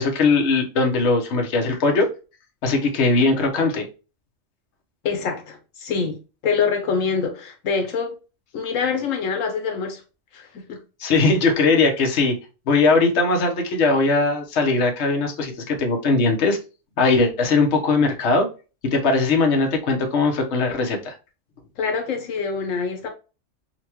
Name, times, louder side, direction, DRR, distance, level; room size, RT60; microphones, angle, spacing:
voice 1, 0.0-2.1 2.6-3.9 11.0-12.3 12.7-16.6 17.0-18.5 18.9-21.1, left 3 dB, 60° left, 1.1 m, -20 dB
voice 2, 5.0-8.2 8.5-10.0 10.3-10.8 21.8-23.1, left 5 dB, 85° left, 1.2 m, -25 dB
5.5 x 2.2 x 2.9 m
omnidirectional pair, 1.3 m